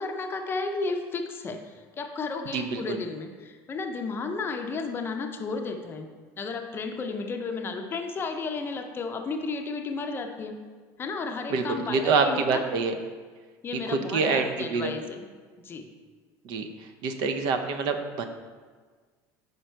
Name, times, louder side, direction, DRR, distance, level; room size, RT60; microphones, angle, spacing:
voice 1, 0.0-6.1 6.4-10.5 11.0-12.6 13.6-15.2 15.6-15.9, left 4 dB, 25° left, 5 dB, 0.5 m, -33 dB
voice 2, 2.5-3.0 11.5-12.9 13.9-14.9 16.4-18.3, right 4 dB, 60° right, 7 dB, 0.6 m, -26 dB
5.5 x 5.1 x 4.4 m, 1.5 s
supercardioid pair, 130°, 9 cm